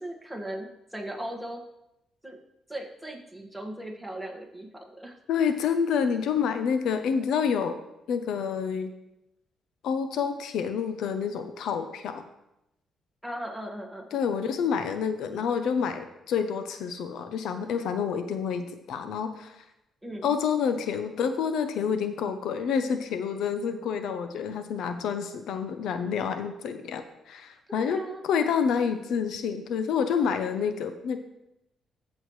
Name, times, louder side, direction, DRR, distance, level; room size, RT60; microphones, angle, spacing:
voice 1, 0.0-1.6 2.2-2.4 2.7-5.2 13.2-14.2 20.0-20.3 27.7-28.2, right 1 dB, 5° right, 0 dB, 1.7 m, -38 dB
voice 2, 5.3-7.8 8.1-8.9 9.8-12.3 14.1-19.6 20.2-31.2, left 6 dB, 80° left, 9 dB, 0.7 m, -28 dB
14.0 x 6.3 x 3.2 m, 0.87 s
cardioid pair, 90°, 0 cm